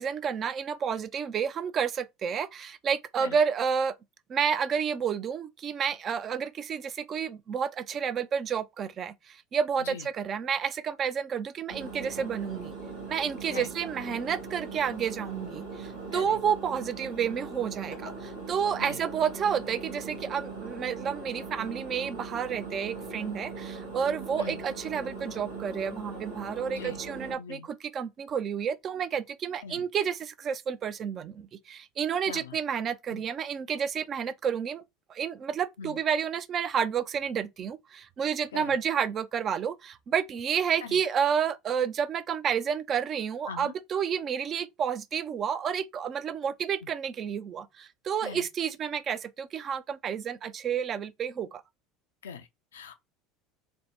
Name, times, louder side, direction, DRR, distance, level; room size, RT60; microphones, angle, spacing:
voice 1, 0.0-4.0 4.3-12.7 13.1-34.8 35.1-51.6, right 7 dB, 40° right, 0.4 m, -30 dB
Engine, 11.7-27.3, right 4 dB, 80° right, 1.4 m, -40 dB
voice 2, 26.7-27.0 27.4-27.7 29.6-29.8 32.3-32.6 33.1-33.2 35.8-36.0 38.5-38.8 40.8-41.0 43.5-43.7 46.8-46.9 48.2-48.5 52.2-52.9, left 6 dB, 80° left, 0.4 m, -41 dB
3.3 x 2.0 x 3.0 m
figure-of-eight pair, 70°, 0 cm